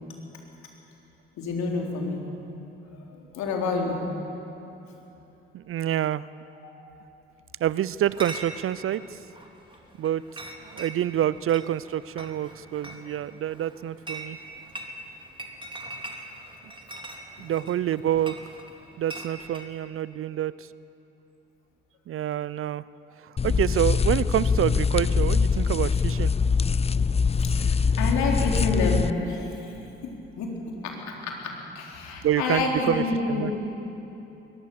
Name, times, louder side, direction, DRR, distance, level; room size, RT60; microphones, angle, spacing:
voice 1, 1.4-2.2 3.1-4.0 6.6-6.7 27.7-29.7 30.0-30.5 30.8-33.5, left 3 dB, 65° left, 0 dB, 4.0 m, -28 dB
voice 2, 5.5-6.3 7.6-9.2 10.0-10.2 10.7-14.4 17.4-18.4 19.0-20.7 22.1-22.8 23.2-26.3 32.2-33.5, right 11 dB, 45° right, 18 dB, 0.6 m, -27 dB
Chatter / Chink clink, 8.0-19.7, right 1 dB, 15° right, 3.4 m, -42 dB
sound 1, 23.4-29.1, left 5 dB, 20° left, 0.5 m, -23 dB
22.0 x 20.0 x 7.2 m, 3.0 s
hypercardioid pair, 50°, 30 cm